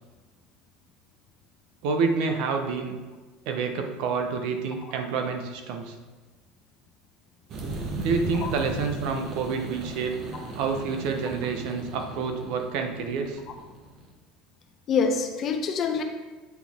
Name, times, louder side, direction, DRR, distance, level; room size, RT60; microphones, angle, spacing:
voice 1, 1.8-3.0 3.5-6.0 8.0-10.2 10.6-13.4, right 5 dB, 65° right, 5 dB, 0.7 m, -28 dB
sound 1, 7.5-14.1, right 1 dB, 40° right, 1.0 m, -37 dB
voice 2, 14.9-16.0, left 5 dB, 35° left, 6 dB, 0.6 m, -26 dB
8.1 x 4.0 x 3.5 m, 1.3 s
cardioid pair, 150°, 0 cm